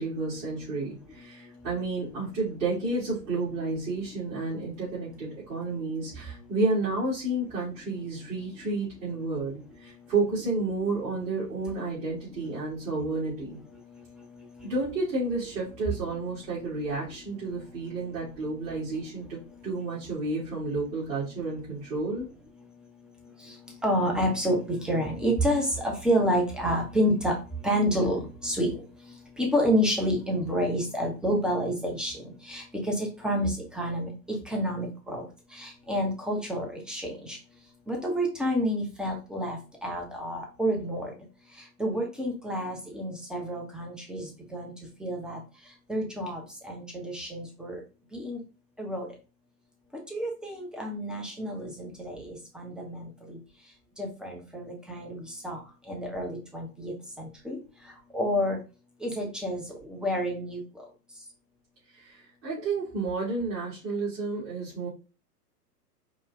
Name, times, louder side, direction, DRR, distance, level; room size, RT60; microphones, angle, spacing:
voice 1, 0.0-13.6 14.6-19.4 19.6-22.3 61.9-64.9, right 3 dB, 50° right, -10 dB, 2.5 m, -31 dB
voice 2, 23.8-27.3 27.6-28.8 29.4-32.2 32.5-35.2 35.5-37.4 37.9-41.1 41.8-44.7 45.0-45.4 45.9-47.8 48.1-48.4 48.8-49.1 50.1-53.4 54.0-55.6 55.9-57.6 58.1-58.6 59.0-60.6, equal, ahead, 0 dB, 0.8 m, -29 dB
4.9 x 2.4 x 3.5 m, 0.32 s
hypercardioid pair, 115°, 48 cm